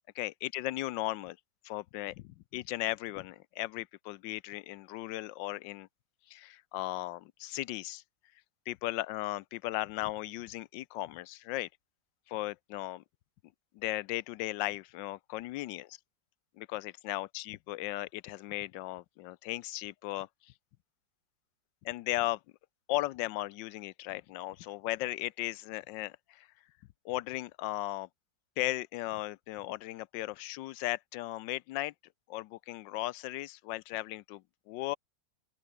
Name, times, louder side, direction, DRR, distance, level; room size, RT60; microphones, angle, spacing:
voice 1, 0.2-1.4 1.6-5.9 6.3-8.0 8.7-11.7 12.3-13.0 13.7-16.0 16.6-20.5 21.8-22.4 22.9-26.5 27.0-28.1 28.6-31.9 32.3-35.0, left 16 dB, 80° left, 1.3 m, -36 dB
open air
omnidirectional pair, 2.0 m